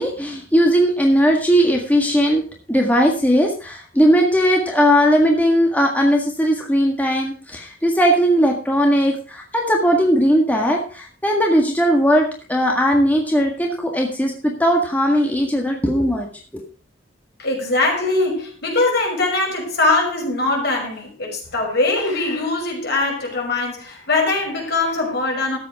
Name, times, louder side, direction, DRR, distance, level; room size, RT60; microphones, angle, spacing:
voice 1, 0.0-2.4 2.7-16.3 16.5-16.6, equal, 10° left, 0 dB, 1.7 m, -18 dB
voice 2, 17.4-25.6, left 2 dB, 60° left, 0 dB, 5.7 m, -21 dB
13.5 x 8.5 x 4.8 m, 0.38 s
head